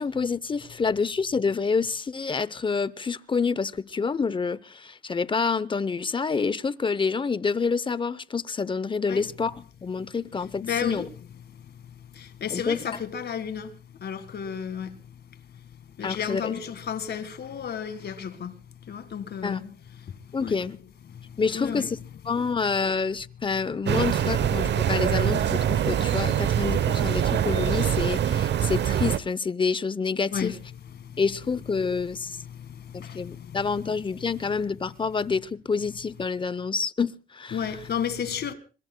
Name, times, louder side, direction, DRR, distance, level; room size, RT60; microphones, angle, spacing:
voice 1, 0.0-9.5 9.8-11.0 12.5-12.8 16.0-16.5 19.4-19.6 20.3-20.8 21.4-21.8 22.2-30.5 31.2-32.4 32.9-37.6, left 5 dB, 25° left, 0.7 m, -27 dB
voice 2, 10.6-11.1 11.4-15.7 16.0-20.7 21.1-21.9 30.3-30.6 30.9-31.2 32.3-34.0 37.5-38.5, left 8 dB, 55° left, 1.8 m, -34 dB
sound 1, 23.9-29.2, right 9 dB, 60° right, 0.9 m, -24 dB
26.5 x 22.0 x 2.2 m
cardioid pair, 90°, 20 cm